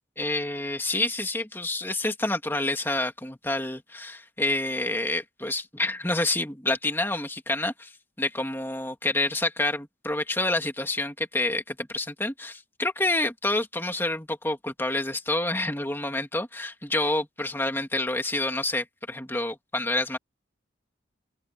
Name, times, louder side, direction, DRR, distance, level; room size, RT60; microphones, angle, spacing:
voice 1, 0.2-7.9 8.2-20.2, left 2 dB, 10° left, 2.6 m, -28 dB
open air
head